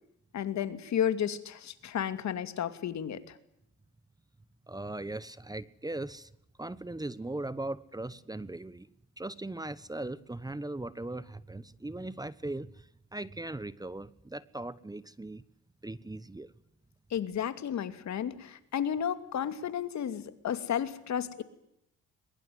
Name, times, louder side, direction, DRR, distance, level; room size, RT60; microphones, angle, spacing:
voice 1, 0.3-3.4 17.1-21.4, left 9 dB, 65° left, 11 dB, 2.6 m, -32 dB
voice 2, 4.7-6.3 6.6-8.9 9.2-15.4 15.8-16.5, right 2 dB, 10° right, 17 dB, 1.1 m, -39 dB
22.5 x 22.0 x 9.4 m, 0.78 s
cardioid pair, 90°, 30 cm